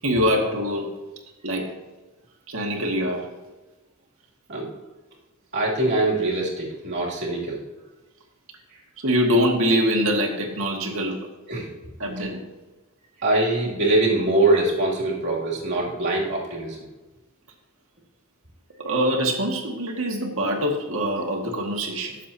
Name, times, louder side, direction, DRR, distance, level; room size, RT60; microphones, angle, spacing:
voice 1, 0.0-0.9 1.4-1.7 2.5-3.2 9.0-11.2 12.0-12.4 18.8-22.2, equal, 70° right, 1 dB, 2.1 m, -24 dB
voice 2, 5.5-7.6 11.5-11.7 13.2-16.8, right 2 dB, 50° right, -4 dB, 2.9 m, -23 dB
21.5 x 7.3 x 2.9 m, 1.2 s
head